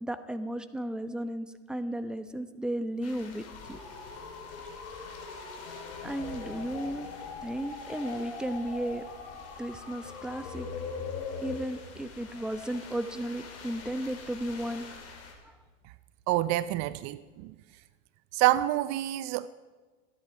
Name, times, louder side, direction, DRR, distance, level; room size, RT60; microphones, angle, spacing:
voice 1, 0.0-3.4 3.7-3.8 6.0-7.1 7.4-9.0 9.6-10.7 11.4-14.9 15.4-15.6, right 1 dB, ahead, 0.9 m, -34 dB
sound 1, 3.0-15.3, left 5 dB, 40° left, 4.2 m, -49 dB
sound 2, 3.5-11.6, left 5 dB, 85° left, 4.7 m, -41 dB
voice 2, 16.3-17.5 18.3-19.5, right 15 dB, 45° right, 0.6 m, -27 dB
27.0 x 10.5 x 4.7 m
hypercardioid pair, 110°, 38 cm